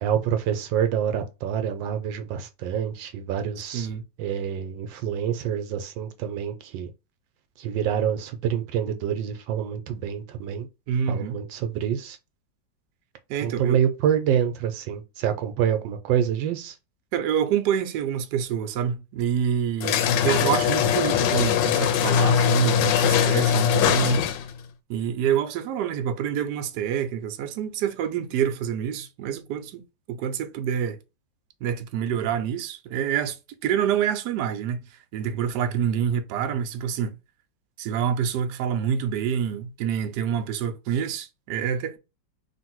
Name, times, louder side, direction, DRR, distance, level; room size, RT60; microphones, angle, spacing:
voice 1, 0.0-3.9 4.2-6.9 7.6-10.7 11.1-12.2 13.4-16.7, right 9 dB, 85° right, 1.4 m, -27 dB
voice 2, 3.7-4.0 10.9-11.4 13.3-13.8 17.1-20.0 20.2-24.3 24.9-31.0 31.6-33.4 33.6-34.9 35.1-37.1 37.8-42.0, right 8 dB, 70° right, 1.1 m, -27 dB
sound 1, 19.8-24.6, left 8 dB, 80° left, 1.2 m, -21 dB
3.3 x 2.6 x 4.4 m
omnidirectional pair, 2.0 m